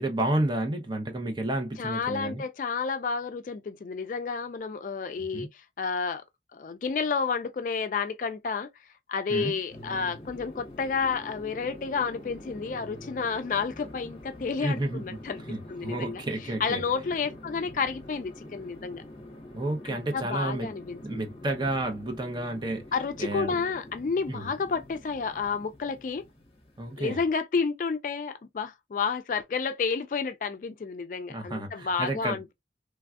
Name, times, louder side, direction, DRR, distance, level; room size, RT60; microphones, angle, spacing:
voice 1, 0.0-2.4 5.3-5.5 9.3-9.5 14.6-15.2 15.5-16.8 19.5-20.7 21.0-22.9 23.2-23.5 24.3-24.5 26.8-27.2 31.3-32.4, right 1 dB, 25° right, 0.6 m, -31 dB
voice 2, 1.8-6.2 6.5-8.7 9.1-15.4 15.7-16.2 16.6-19.0 19.9-21.2 22.9-26.2 27.0-32.5, left 5 dB, 45° left, 0.3 m, -30 dB
sound 1, 9.7-27.0, left 1 dB, 30° left, 0.8 m, -46 dB
3.3 x 2.3 x 2.3 m
head